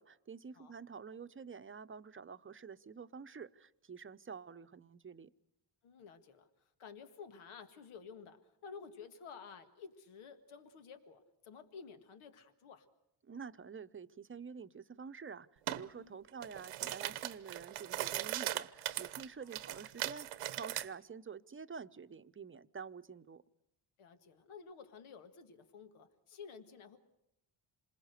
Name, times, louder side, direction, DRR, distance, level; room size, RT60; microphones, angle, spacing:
voice 1, 0.0-5.3 13.2-23.4, right 6 dB, 25° right, 12 dB, 0.8 m, -48 dB
voice 2, 5.8-12.9 16.0-16.2 24.0-27.0, left 6 dB, 80° left, 7 dB, 1.9 m, -53 dB
sound 1, 15.7-15.8 16.3-20.9, right 14 dB, 85° right, 1.0 m, -39 dB
27.5 x 20.5 x 6.7 m, 0.83 s
cardioid pair, 80°, 49 cm